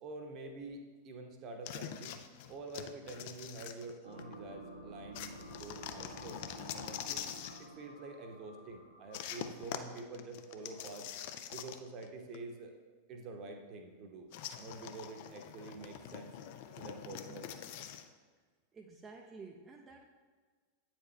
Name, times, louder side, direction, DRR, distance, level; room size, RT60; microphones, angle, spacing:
voice 1, 0.0-2.2 2.5-7.2 7.6-11.1 11.5-12.7 13.1-14.3 14.6-16.4 16.8-17.5, right 3 dB, 35° right, 4 dB, 0.8 m, -47 dB
sound 1, 1.6-4.3 5.1-7.7 9.1-12.1 12.3-12.4 14.3-18.1, left 10 dB, 50° left, 0.4 m, -45 dB
sound 2, 4.0-9.7, right 2 dB, 85° right, 1.0 m, -52 dB
voice 2, 18.7-20.0, right 4 dB, 20° right, 1 dB, 0.4 m, -51 dB
8.6 x 4.4 x 3.1 m, 1.5 s
figure-of-eight pair, 90°, 0 cm